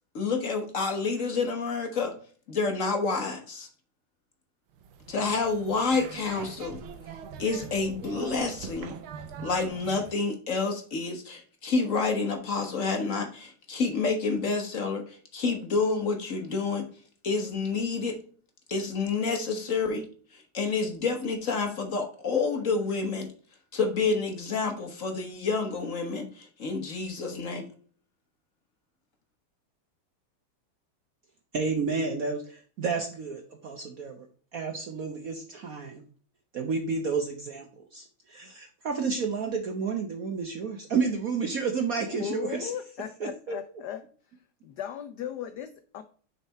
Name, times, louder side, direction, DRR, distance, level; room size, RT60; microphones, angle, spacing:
voice 1, 0.1-2.1 2.5-3.7 5.1-6.8 7.4-8.9 9.4-16.8 17.2-18.1 18.7-20.0 20.3-23.3 23.7-27.7, left 4 dB, 45° left, 4 dB, 1.2 m, -29 dB
sound 1, 4.7-10.2, right 7 dB, 75° right, 1.6 m, -43 dB
voice 2, 31.5-34.3 34.5-36.0 36.5-42.7 43.2-43.6, right 5 dB, 60° right, 4 dB, 0.9 m, -31 dB
voice 3, 42.1-44.0 44.6-46.0, left 9 dB, 80° left, 10 dB, 0.9 m, -37 dB
6.5 x 4.7 x 4.2 m, 0.43 s
omnidirectional pair, 2.4 m